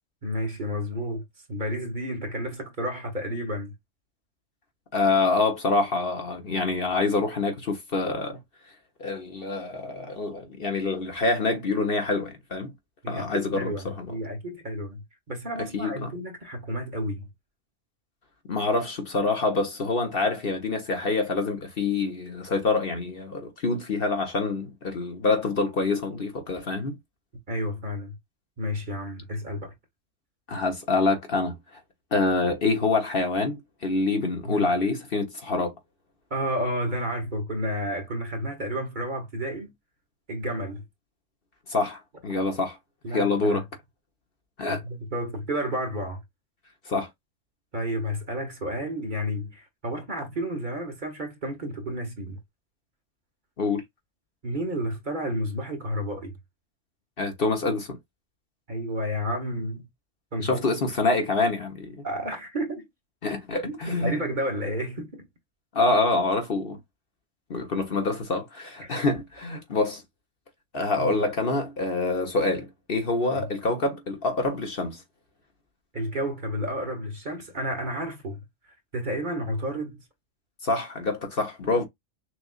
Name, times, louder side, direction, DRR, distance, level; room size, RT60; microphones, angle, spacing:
voice 1, 0.2-3.7 13.0-17.3 27.5-28.1 28.6-29.7 34.4-34.7 36.3-39.7 40.3-40.8 43.0-43.6 44.7-46.2 47.7-52.4 54.4-56.4 58.7-59.9 60.3-60.7 62.0-62.9 63.6-65.3 68.8-69.2 71.0-71.2 73.4-73.5 75.9-78.4 78.9-80.0, equal, 40° right, 1.3 m, -31 dB
voice 2, 4.9-8.4 9.0-12.7 13.1-14.1 15.7-16.1 18.5-27.0 30.5-31.6 32.1-35.7 41.7-42.8 43.1-43.6 44.6-44.8 46.9-47.1 53.6-53.8 57.2-58.0 60.4-62.0 63.2-64.2 65.7-66.8 67.5-70.0 70.7-75.0 80.6-81.8, left 3 dB, 50° left, 1.2 m, -26 dB
6.2 x 2.6 x 2.4 m
omnidirectional pair, 1.3 m